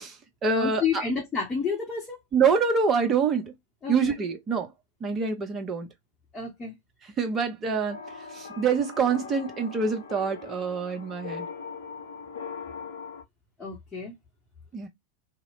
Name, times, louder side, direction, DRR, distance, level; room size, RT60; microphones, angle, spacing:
voice 1, 0.0-0.8 2.3-3.5 3.9-4.7 5.0-5.9 7.0-8.0 8.3-11.5 14.7-14.9, right 5 dB, 25° right, 0.7 m, -26 dB
voice 2, 0.6-2.2 3.8-4.0 6.3-6.7 13.6-14.1, left 5 dB, 20° left, 0.9 m, -30 dB
sound 1, 7.7-13.2, left 5 dB, 65° left, 0.4 m, -40 dB
2.8 x 2.0 x 2.4 m
figure-of-eight pair, 90°, 0 cm